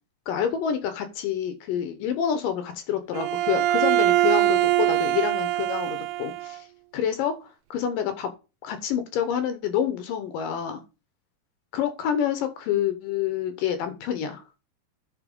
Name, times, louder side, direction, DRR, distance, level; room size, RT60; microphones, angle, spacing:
voice 1, 0.3-6.7 6.9-8.3 8.6-10.8 11.7-14.4, left 9 dB, 75° left, 10 dB, 2.6 m, -28 dB
Bowed string instrument, 3.1-6.6, right 14 dB, 85° right, 1.8 m, -23 dB
10.0 x 4.5 x 5.3 m, 0.31 s
omnidirectional pair, 4.1 m